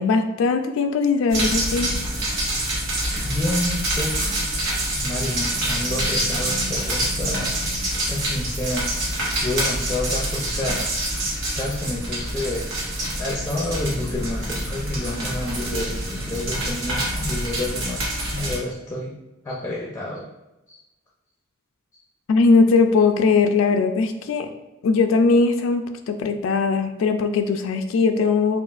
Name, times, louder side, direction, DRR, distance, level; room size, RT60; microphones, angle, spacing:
voice 1, 0.0-1.9 22.3-24.5 24.8-28.6, left 4 dB, 90° left, 6 dB, 0.3 m, -19 dB
sound 1, 1.3-18.6, right 1 dB, 85° right, 1.2 m, -26 dB
voice 2, 3.2-4.3 5.0-8.9 9.4-10.9 11.5-12.6 13.2-19.1 19.4-20.3 20.7-20.8, left 1 dB, 15° left, -3 dB, 0.5 m, -29 dB
5.4 x 2.4 x 2.4 m, 0.99 s
head